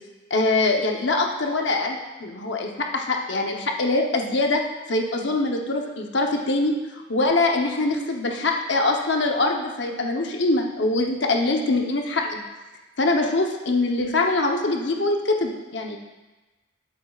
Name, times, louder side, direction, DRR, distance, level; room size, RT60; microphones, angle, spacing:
voice 1, 0.3-4.6 4.9-6.7 7.1-12.4 13.0-16.0, left 2 dB, 60° left, 2 dB, 0.9 m, -23 dB
11.5 x 9.4 x 2.4 m, 1.2 s
head